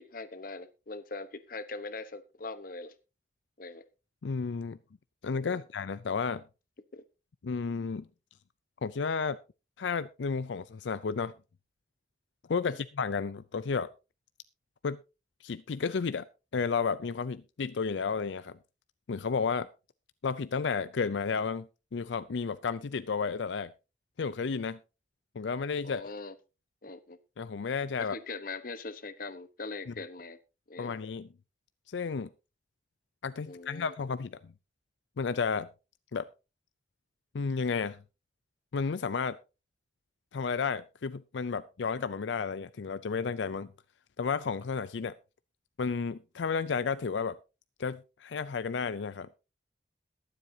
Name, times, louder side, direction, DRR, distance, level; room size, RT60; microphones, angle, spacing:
voice 1, 0.0-2.9 3.6-3.8 5.4-5.6 6.9-7.0 12.7-12.8 25.8-26.3 26.8-27.2 28.0-30.4 30.7-31.0 33.4-33.9, left 3 dB, 50° left, 1.0 m, -41 dB
voice 2, 4.2-4.8 5.2-6.4 7.4-8.1 8.8-9.4 9.8-11.3 12.5-13.9 14.8-15.0 15.4-16.3 16.5-18.6 19.1-19.7 20.2-23.7 24.2-24.8 25.4-26.0 27.4-28.1 29.9-30.0 30.8-31.3 31.9-32.3 33.2-34.5 35.2-35.7 36.1-36.3 37.3-38.0 38.7-39.4 40.3-43.7 44.2-45.1 45.8-47.4 47.8-49.3, left 5 dB, 85° left, 0.5 m, -32 dB
21.5 x 7.8 x 2.8 m
head